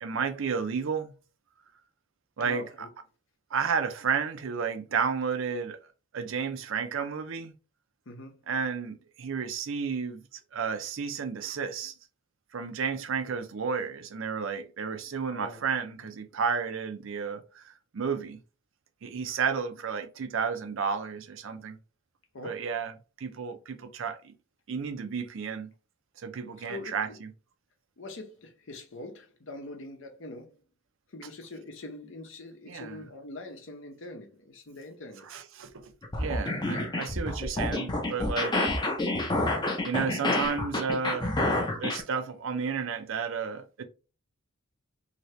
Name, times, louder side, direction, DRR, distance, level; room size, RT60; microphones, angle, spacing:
voice 1, 0.0-1.1 2.4-2.9 3.5-5.8 6.1-7.5 8.5-10.2 10.5-11.9 12.5-18.4 19.0-21.8 22.4-22.9 23.2-24.3 24.7-25.7 26.2-27.3 32.7-33.0 35.3-35.8 36.2-38.7 39.8-41.4 41.8-43.8, right 6 dB, 65° right, 0.5 m, -32 dB
voice 2, 2.4-2.9 8.1-8.3 15.3-15.6 22.3-22.7 26.6-27.2 28.0-30.5 31.1-35.3, left 2 dB, 60° left, 0.8 m, -43 dB
sound 1, 36.0-42.0, left 2 dB, 20° left, 0.6 m, -28 dB
2.8 x 2.8 x 3.1 m
head